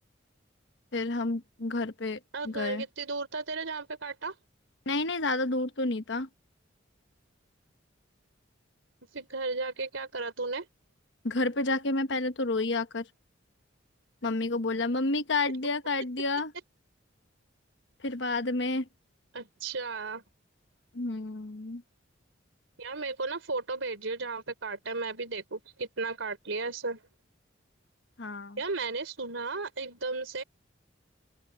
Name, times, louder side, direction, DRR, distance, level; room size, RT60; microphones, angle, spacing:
voice 1, 0.9-2.2 2.4-2.8 4.9-6.3 11.2-13.1 14.2-16.5 18.0-18.9 20.9-21.8 28.2-28.6, left 2 dB, 65° left, 1.1 m, -30 dB
voice 2, 2.3-4.3 9.1-10.7 19.3-20.2 22.8-27.0 28.6-30.4, right 3 dB, 80° right, 3.3 m, -34 dB
open air
head